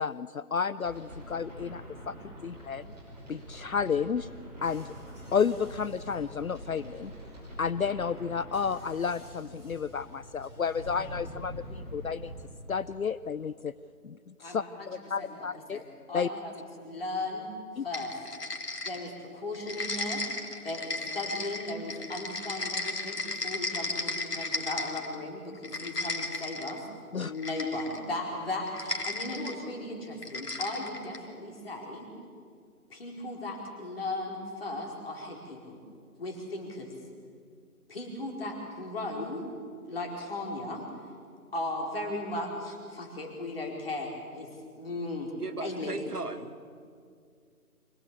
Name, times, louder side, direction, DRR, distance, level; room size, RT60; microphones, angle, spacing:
voice 1, 0.0-2.2 2.4-2.9 3.3-4.3 4.6-4.9 5.3-7.1 7.6-12.3 12.7-13.7 14.0-15.8 16.1-16.3 17.8-17.9 27.1-27.3, left 6 dB, 65° left, 16 dB, 0.6 m, -31 dB
sound 1, 0.8-12.5, equal, 25° right, 5.9 m, -45 dB
voice 2, 14.4-15.8 16.1-17.5 17.8-18.1 18.8-20.2 20.6-26.8 27.2-32.1 32.9-35.8 36.2-36.9 37.9-39.4 39.9-40.8 41.5-45.3 45.6-46.0, left 2 dB, 40° left, 1 dB, 4.5 m, -36 dB
sound 2, 17.9-19.2 19.5-25.2 25.5-26.8 27.4-28.1 28.7-29.6 30.2-31.3, left 2 dB, 85° left, 2.8 m, -35 dB
voice 3, 45.4-46.5, right 3 dB, 75° right, 7 dB, 2.0 m, -37 dB
25.0 x 17.5 x 8.4 m, 2.2 s
figure-of-eight pair, 165°, 46 cm